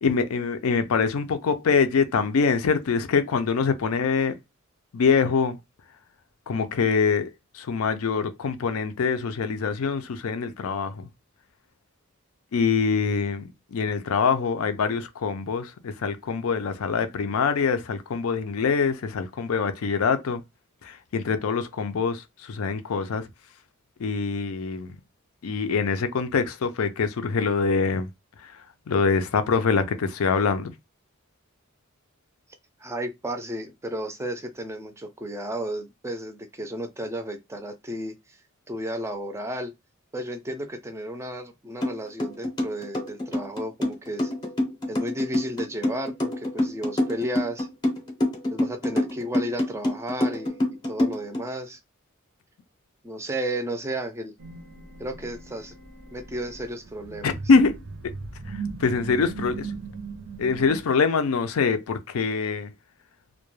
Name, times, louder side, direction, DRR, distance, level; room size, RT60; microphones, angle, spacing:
voice 1, 0.0-4.4 4.9-5.6 6.5-11.1 12.5-20.4 20.8-23.3 24.0-25.0 25.4-28.1 28.4-30.7 57.2-57.8 58.5-59.7 60.4-62.7, left 5 dB, 85° left, 0.4 m, -24 dB
voice 2, 32.8-38.4 38.7-39.7 40.1-44.3 44.9-47.7 48.5-51.8 53.0-54.3 55.0-55.7 56.1-57.3, right 1 dB, 15° right, 0.4 m, -33 dB
sound 1, 41.8-41.9 42.2-51.4, left 1 dB, 20° left, 0.7 m, -25 dB
sound 2, 54.4-60.8, right 4 dB, 65° right, 0.5 m, -38 dB
2.2 x 2.1 x 3.0 m
head